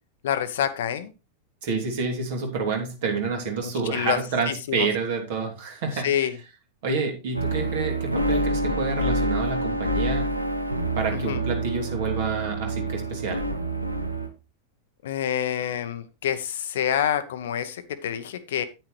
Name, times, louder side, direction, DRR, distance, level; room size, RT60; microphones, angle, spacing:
voice 1, 0.2-1.1 3.6-4.2 4.5-4.9 6.0-6.3 11.1-11.4 15.0-18.7, left 10 dB, 60° left, 11 dB, 0.8 m, -27 dB
voice 2, 1.6-6.1 6.8-10.2 10.9-13.4, right 4 dB, 55° right, 2 dB, 3.0 m, -28 dB
sound 1, 7.3-14.3, right 1 dB, 85° right, 1.2 m, -27 dB
9.4 x 9.3 x 3.2 m, 0.28 s
figure-of-eight pair, 90°, 0 cm